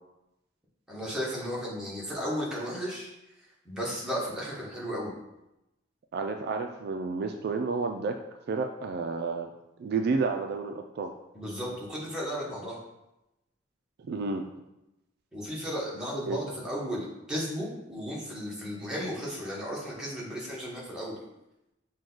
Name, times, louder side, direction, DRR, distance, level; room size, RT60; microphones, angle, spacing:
voice 1, 0.9-5.1 11.3-12.8 15.3-21.2, equal, 5° right, -5 dB, 1.1 m, -35 dB
voice 2, 6.1-8.2 8.5-9.5 9.8-11.1 14.1-14.4 16.3-16.4, right 4 dB, 55° right, 4 dB, 0.3 m, -30 dB
6.1 x 2.3 x 3.8 m, 0.91 s
head